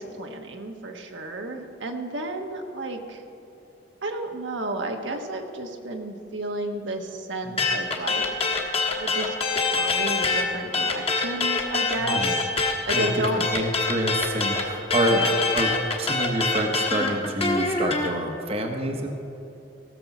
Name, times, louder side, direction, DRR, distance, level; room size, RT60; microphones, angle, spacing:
voice 1, 0.0-3.2 4.0-8.3 9.0-9.3 9.7-12.5 12.8-13.4 15.0-15.3, right 2 dB, 75° right, 3 dB, 1.2 m, -31 dB
sound 1, 7.6-10.4 10.7-18.1, left 3 dB, 30° left, 1.3 m, -24 dB
voice 2, 12.0-12.4 12.9-13.1 13.3-15.2 15.5-15.7 16.0-19.1, right 1 dB, 30° right, 3 dB, 1.0 m, -27 dB
17.0 x 7.0 x 5.9 m, 3.0 s
head